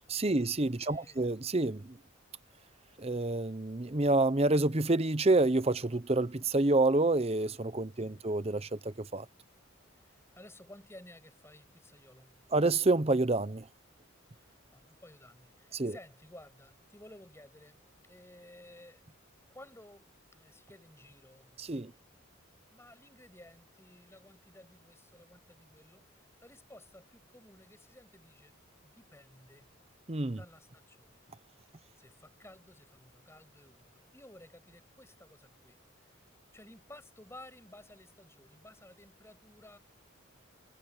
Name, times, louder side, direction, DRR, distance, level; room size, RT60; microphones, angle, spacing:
voice 1, 0.1-2.0 3.0-9.3 12.5-13.7 15.7-15.9 21.6-21.9 30.1-30.4, right 2 dB, 30° right, 0.8 m, -28 dB
voice 2, 0.8-1.2 7.9-8.2 9.9-12.5 14.3-19.1 19.5-21.7 22.7-29.8 30.3-31.3 31.7-36.2 36.5-39.8, left 1 dB, 10° left, 7.2 m, -55 dB
head